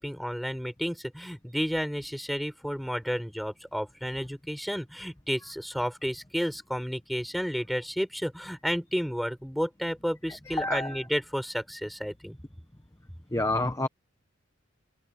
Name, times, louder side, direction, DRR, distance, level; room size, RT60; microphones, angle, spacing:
voice 1, 0.0-12.4, equal, ahead, 6.4 m, -32 dB
voice 2, 10.5-11.0 13.3-13.9, left 2 dB, 15° left, 1.0 m, -28 dB
open air
head